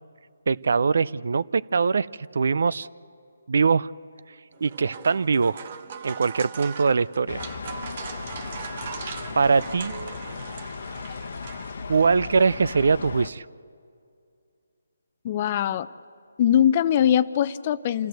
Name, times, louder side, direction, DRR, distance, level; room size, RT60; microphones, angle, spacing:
voice 1, 0.5-2.1 2.3-2.9 3.5-3.9 4.6-5.6 6.0-7.4 9.4-9.9 11.9-13.4, right 5 dB, 65° right, 19 dB, 0.4 m, -22 dB
sound 1, 4.5-12.1, right 6 dB, 40° right, 1.1 m, -40 dB
sound 2, 7.3-13.3, left 5 dB, 60° left, 0.9 m, -36 dB
voice 2, 15.2-15.9 16.4-18.1, left 10 dB, 35° left, 15 dB, 0.6 m, -21 dB
27.5 x 14.5 x 7.9 m, 2.4 s
figure-of-eight pair, 155°, 0 cm